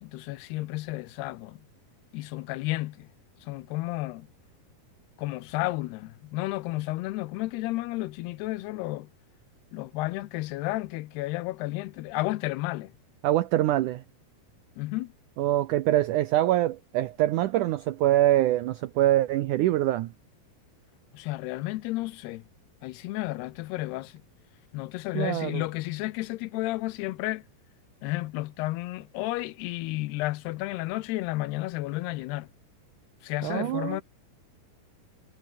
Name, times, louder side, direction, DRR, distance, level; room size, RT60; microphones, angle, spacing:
voice 1, 0.0-1.6 2.1-3.1 3.4-4.3 5.2-9.1 9.7-12.9 14.8-15.1 21.1-22.5 22.8-24.2 24.7-27.4 28.0-32.5 33.2-34.0, left 19 dB, 85° left, 2.8 m, -32 dB
voice 2, 13.2-14.0 15.4-20.1 25.1-25.6 33.4-34.0, right 14 dB, 85° right, 1.7 m, -24 dB
omnidirectional pair, 4.7 m